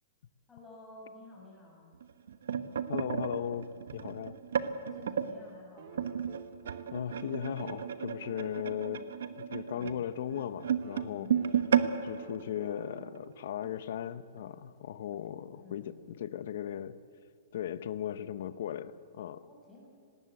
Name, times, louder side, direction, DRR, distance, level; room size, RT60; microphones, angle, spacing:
voice 1, 0.5-1.9 4.8-6.3 10.9-11.9 15.5-15.9 19.4-19.9, left 2 dB, 10° left, -4 dB, 6.4 m, -53 dB
sound 1, 2.0-5.3 5.9-13.2 13.6-13.8 14.1-14.4 15.1-15.2, right 8 dB, 80° right, 1.2 m, -33 dB
voice 2, 2.9-4.4 6.9-9.0 9.4-11.3 12.0-17.0 17.5-19.4, left 10 dB, 60° left, 14 dB, 0.9 m, -37 dB
sound 2, 5.8-9.9 10.8-14.4 15.8-15.9, right 7 dB, 45° right, 1.4 m, -52 dB
19.0 x 18.0 x 8.3 m, 2.4 s
hypercardioid pair, 165°, 0 cm